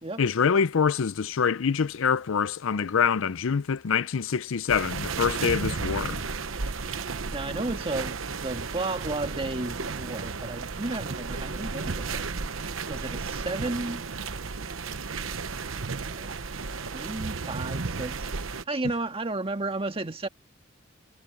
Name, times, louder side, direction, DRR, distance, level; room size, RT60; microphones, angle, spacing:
voice 1, 0.2-6.2, left 6 dB, 80° left, 0.5 m, -25 dB
sound 1, 4.7-18.6, right 4 dB, 90° right, 1.0 m, -33 dB
voice 2, 7.3-12.3 12.8-14.0 16.0-16.3 16.8-20.3, right 2 dB, 30° right, 1.8 m, -33 dB
head